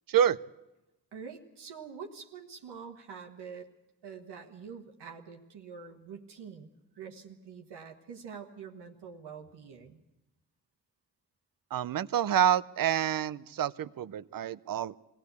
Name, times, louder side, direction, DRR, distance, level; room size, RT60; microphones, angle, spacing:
voice 1, 0.1-0.4 11.7-15.0, right 10 dB, 60° right, 18 dB, 0.6 m, -27 dB
voice 2, 1.1-3.7 4.0-10.0, right 6 dB, 90° right, 4 dB, 1.6 m, -46 dB
21.5 x 16.5 x 8.2 m, 0.98 s
supercardioid pair, 45°, 39 cm